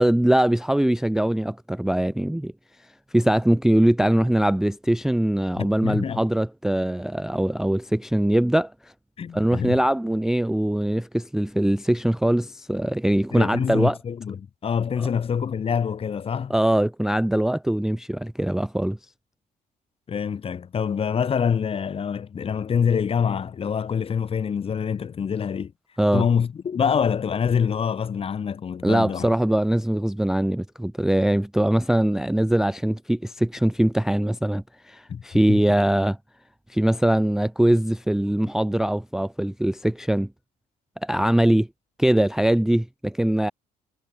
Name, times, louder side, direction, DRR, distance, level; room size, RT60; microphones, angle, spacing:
voice 1, 0.0-2.5 3.1-8.7 9.3-14.0 15.0-15.1 16.5-19.0 26.0-26.3 28.8-36.2 36.7-40.3 41.0-41.7 42.0-43.5, right 1 dB, 5° right, 0.4 m, -22 dB
voice 2, 5.6-6.2 9.2-9.8 13.3-16.5 20.1-25.7 26.1-29.3 35.1-35.6, left 7 dB, 35° left, 1.1 m, -25 dB
cardioid pair, 110°, 17 cm